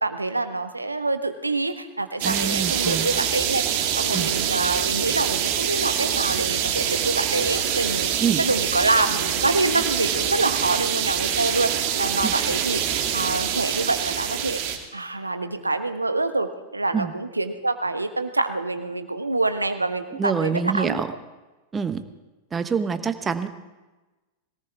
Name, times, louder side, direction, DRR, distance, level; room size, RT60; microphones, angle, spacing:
voice 1, 0.0-8.1 8.4-12.8 13.1-14.6 14.9-21.0, right 2 dB, 80° right, 10 dB, 1.1 m, -26 dB
voice 2, 2.2-3.1 4.1-4.3 8.2-8.4 12.2-12.3 16.9-17.1 20.2-21.1 21.7-22.0 22.5-23.5, right 6 dB, 20° right, 10 dB, 1.1 m, -25 dB
sound 1, 2.2-14.8, right 9 dB, 50° right, 2.4 m, -25 dB
21.5 x 18.0 x 3.5 m, 1.1 s
figure-of-eight pair, 90°, 0 cm